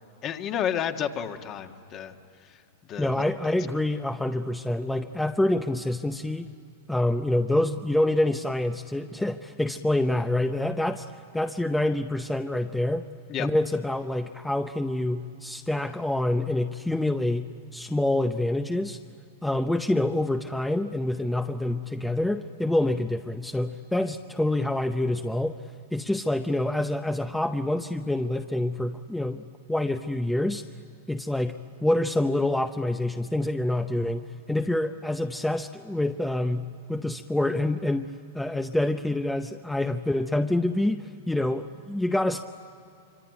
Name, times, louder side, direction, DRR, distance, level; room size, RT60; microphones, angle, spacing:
voice 1, 0.2-2.1 2.5-2.6 2.9-3.5 13.3-13.5, left 9 dB, 35° left, 6 dB, 1.6 m, -31 dB
voice 2, 3.0-6.5 6.9-11.1 11.3-13.1 13.4-19.0 19.4-25.6 25.9-29.4 29.7-30.6 31.1-38.1 38.3-42.4, left 1 dB, 5° left, 7 dB, 0.7 m, -26 dB
25.0 x 25.0 x 9.4 m, 2.7 s
hypercardioid pair, 120°, 0 cm